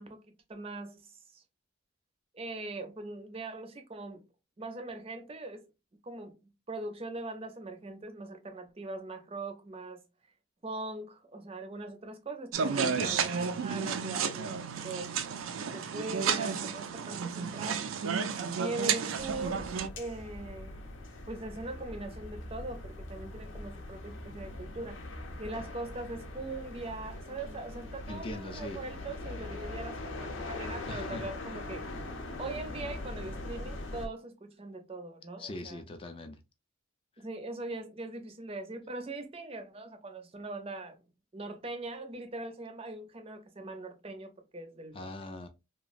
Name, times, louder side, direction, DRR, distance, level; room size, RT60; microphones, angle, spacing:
voice 1, 0.0-1.4 2.3-4.2 4.6-5.7 6.0-10.0 10.6-15.1 15.6-17.9 18.6-19.7 20.0-20.8 21.3-31.9 32.4-35.8 37.2-41.0 41.3-45.1, right 2 dB, 30° right, 0.5 m, -41 dB
sound 1, 12.5-19.9, right 6 dB, 85° right, 0.4 m, -32 dB
sound 2, 19.2-34.1, left 2 dB, 70° left, 0.6 m, -42 dB
voice 2, 28.1-28.8 30.9-31.6 35.4-36.4 44.9-45.5, left 2 dB, 25° left, 0.4 m, -42 dB
3.0 x 2.3 x 2.4 m
head